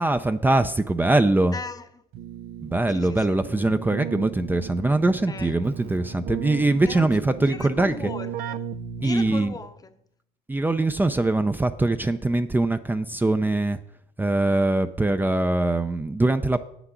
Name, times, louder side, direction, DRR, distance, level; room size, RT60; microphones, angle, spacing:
voice 1, 0.0-1.6 2.6-8.0 9.0-9.5 10.5-13.8 14.2-16.6, right 2 dB, 10° right, 0.5 m, -22 dB
voice 2, 1.5-2.0 2.9-3.4 5.3-5.6 6.9-8.7 9.0-9.9, left 4 dB, 20° left, 0.8 m, -38 dB
Keyboard (musical), 2.1-9.7, right 8 dB, 70° right, 0.5 m, -36 dB
8.6 x 6.0 x 8.1 m
cardioid pair, 110°, 17 cm